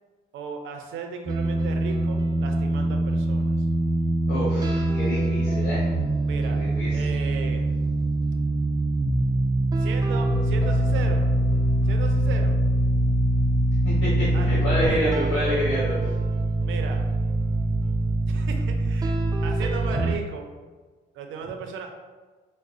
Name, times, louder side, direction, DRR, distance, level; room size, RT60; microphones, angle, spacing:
voice 1, 0.3-3.7 6.2-6.6 6.9-7.7 9.8-11.2 11.8-12.6 14.3-14.5 14.8-15.2 16.6-17.0 18.3-19.2 19.4-20.5 21.1-22.0, right 5 dB, 80° right, 4 dB, 0.5 m, -36 dB
sound 1, 1.3-20.2, right 1 dB, 20° right, 0.3 m, -23 dB
voice 2, 4.3-5.9 6.5-7.1 14.0-16.0, equal, 70° left, -9 dB, 1.4 m, -28 dB
4.8 x 2.0 x 2.6 m, 1.3 s
cardioid pair, 90°, 20 cm